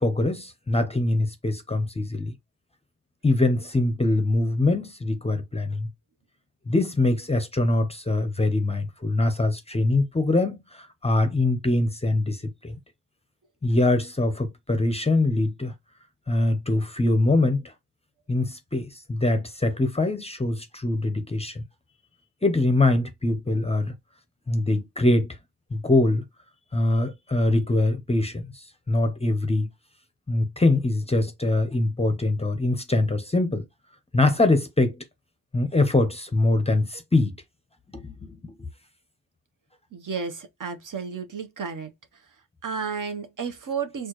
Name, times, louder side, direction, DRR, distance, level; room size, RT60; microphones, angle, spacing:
voice 1, 0.0-2.3 3.2-5.9 6.7-12.8 13.6-15.7 16.3-17.7 18.3-21.6 22.4-23.9 24.5-25.4 25.7-26.2 26.7-29.7 30.3-33.6 34.1-35.0 35.5-37.4 37.9-38.6, left 2 dB, 15° left, 0.6 m, -23 dB
voice 2, 39.9-41.9 42.6-44.1, right 5 dB, 55° right, 0.9 m, -32 dB
4.2 x 2.3 x 3.0 m
cardioid pair, 90°, 38 cm